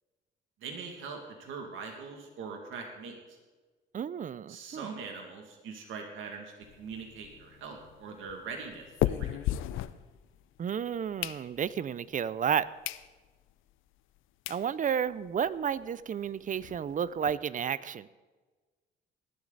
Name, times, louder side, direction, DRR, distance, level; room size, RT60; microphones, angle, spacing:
voice 1, 0.6-3.2 4.5-9.4, right 5 dB, 85° right, 2 dB, 2.3 m, -42 dB
voice 2, 3.9-4.9 10.6-12.7 14.5-18.1, right 8 dB, 40° right, 18 dB, 0.5 m, -32 dB
sound 1, 6.6-10.6 10.9-11.9 12.4-12.5 12.8-13.1 13.5-13.6 14.2-14.3 14.5-14.7 15.1-15.2 15.3-15.5 15.8-15.9 16.2-17.3, left 13 dB, 85° left, 0.5 m, -36 dB
19.5 x 12.5 x 4.0 m, 1.3 s
cardioid pair, 90°, 20 cm